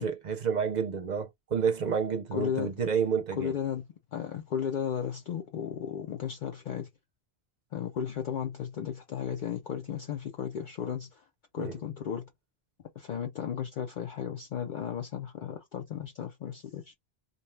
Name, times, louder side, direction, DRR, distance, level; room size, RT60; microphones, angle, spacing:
voice 1, 0.0-3.5 11.6-11.8, right 6 dB, 50° right, 0.6 m, -29 dB
voice 2, 2.3-2.7 3.4-6.9 7.7-11.2 11.5-12.3 13.0-16.9, left 8 dB, 60° left, 0.6 m, -34 dB
2.6 x 2.2 x 3.1 m
omnidirectional pair, 1.0 m